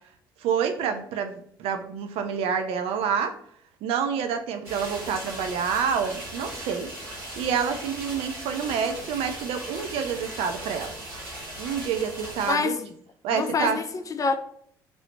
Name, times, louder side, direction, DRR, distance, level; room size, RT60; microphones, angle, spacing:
voice 1, 0.4-3.3 3.8-6.9 7.4-10.9 11.6-12.8 13.2-13.8, right 7 dB, 65° right, 0.4 m, -28 dB
sound 1, 4.6-12.5, right 1 dB, 85° right, 1.5 m, -38 dB
voice 2, 12.5-12.8 13.3-14.4, left 4 dB, 30° left, 0.4 m, -26 dB
3.0 x 2.0 x 3.9 m
hypercardioid pair, 55°, 11 cm